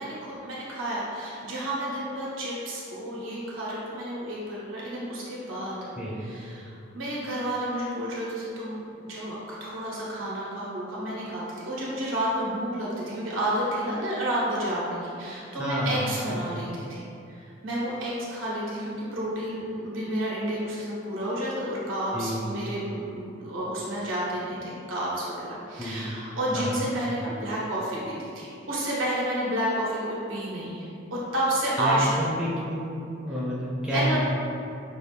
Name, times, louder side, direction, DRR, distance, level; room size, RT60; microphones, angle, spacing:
voice 1, 0.0-5.8 6.3-32.3 33.9-34.2, right 1 dB, 85° right, -7 dB, 1.2 m, -30 dB
voice 2, 15.6-16.4 22.1-22.5 25.8-26.1 26.5-26.8 31.8-32.8 33.2-34.2, equal, 5° right, -8 dB, 0.8 m, -29 dB
5.4 x 2.5 x 3.3 m, 2.6 s
head